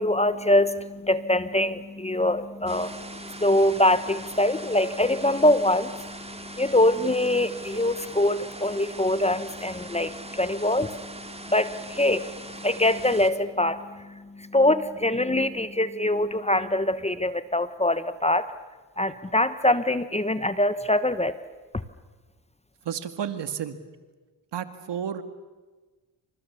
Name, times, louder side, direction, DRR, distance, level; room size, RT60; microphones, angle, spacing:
voice 1, 0.0-18.5 19.0-21.3, left 1 dB, 15° left, 13 dB, 1.1 m, -24 dB
sound 1, 2.7-13.3, right 2 dB, 15° right, 2.9 m, -41 dB
voice 2, 22.8-23.8 24.5-25.2, right 8 dB, 65° right, 10 dB, 2.1 m, -31 dB
28.0 x 26.5 x 7.1 m, 1.3 s
cardioid pair, 75°, 46 cm